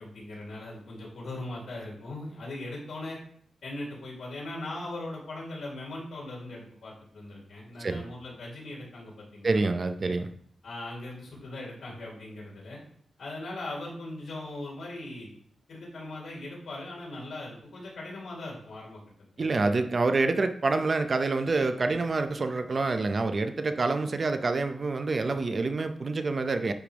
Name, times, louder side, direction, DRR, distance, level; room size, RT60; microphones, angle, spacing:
voice 1, 0.0-3.2 3.6-9.6 10.0-10.1 10.6-12.8 13.2-15.3 15.7-19.0 19.3-19.4 19.7-19.9, left 2 dB, 70° left, -5 dB, 3.0 m, -39 dB
voice 2, 9.4-10.3 19.4-26.7, right 3 dB, 35° right, 8 dB, 0.4 m, -27 dB
10.0 x 3.5 x 3.4 m, 0.62 s
wide cardioid pair, 155°, 0 cm